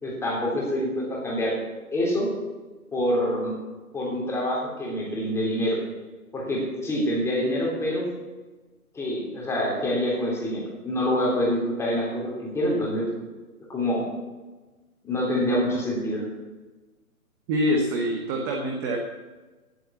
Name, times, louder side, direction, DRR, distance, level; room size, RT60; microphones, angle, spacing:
voice 1, 0.0-1.6 1.9-2.3 2.9-3.5 3.9-5.8 6.3-8.0 8.9-13.1 13.7-14.0 15.0-16.2, equal, 5° left, -3 dB, 3.2 m, -26 dB
voice 2, 17.5-19.0, equal, 15° right, 1 dB, 0.9 m, -25 dB
17.0 x 7.9 x 7.2 m, 1.2 s
hypercardioid pair, 145°, 44 cm